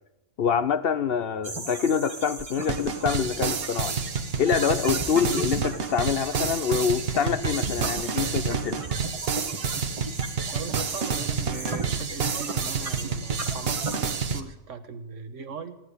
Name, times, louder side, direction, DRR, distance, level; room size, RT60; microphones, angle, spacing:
voice 1, 0.4-4.0 4.4-8.8, left 7 dB, 55° left, 13 dB, 0.8 m, -26 dB
sound 1, 1.4-14.0, right 3 dB, 30° right, 1.1 m, -36 dB
sound 2, 2.7-14.4, right 5 dB, 55° right, 1.2 m, -29 dB
voice 2, 10.5-15.8, right 5 dB, 90° right, 9 dB, 1.6 m, -39 dB
16.0 x 11.0 x 8.1 m, 0.92 s
omnidirectional pair, 1.2 m